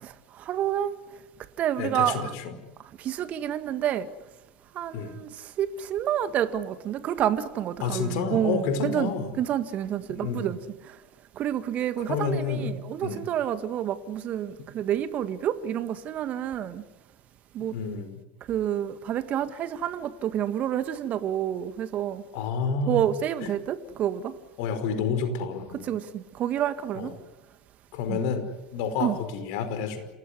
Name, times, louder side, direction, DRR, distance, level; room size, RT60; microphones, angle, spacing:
voice 1, 0.0-0.9 1.6-2.3 3.0-4.1 4.7-9.1 9.4-10.6 11.4-16.8 17.5-17.7 18.5-22.2 22.9-24.3 25.9-27.1 28.1-28.2 29.0-29.2, right 10 dB, 40° right, 11 dB, 1.9 m, -29 dB
voice 2, 1.8-2.5 4.9-5.2 7.8-9.3 10.1-10.6 12.0-13.3 17.6-18.2 22.3-23.0 23.4-23.5 24.6-25.9 26.9-27.1 27.9-30.1, left 5 dB, 60° left, 9 dB, 5.1 m, -30 dB
28.0 x 18.5 x 9.8 m, 1.0 s
figure-of-eight pair, 80°, 4 cm